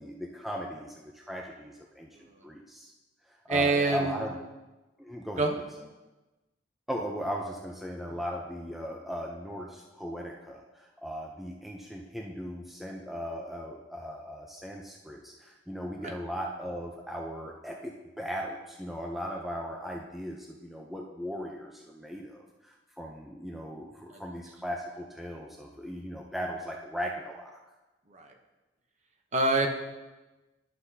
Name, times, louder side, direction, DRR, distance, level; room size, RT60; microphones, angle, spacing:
voice 1, 0.0-2.9 3.3-4.4 5.0-5.5 6.9-27.5, equal, ahead, -1 dB, 0.5 m, -38 dB
voice 2, 3.5-4.3 5.4-5.9 8.1-8.2 24.1-24.2 28.1-28.3 29.3-29.7, right 3 dB, 35° right, 3 dB, 0.8 m, -26 dB
11.5 x 5.9 x 2.7 m, 1.1 s
head